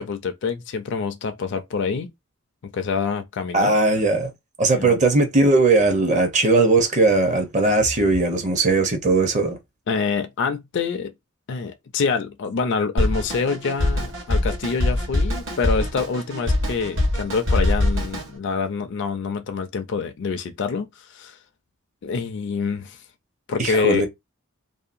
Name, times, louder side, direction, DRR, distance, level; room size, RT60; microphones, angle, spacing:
voice 1, 0.0-2.1 2.6-3.7 4.8-5.0 9.9-11.1 11.5-21.4 22.0-23.0 23.5-24.1, left 5 dB, 55° left, 0.4 m, -26 dB
voice 2, 3.5-4.3 4.6-9.6 23.6-24.1, right 3 dB, 35° right, 0.7 m, -19 dB
Drum kit, 13.0-18.3, left 1 dB, 55° right, 1.1 m, -23 dB
2.7 x 2.2 x 2.5 m
head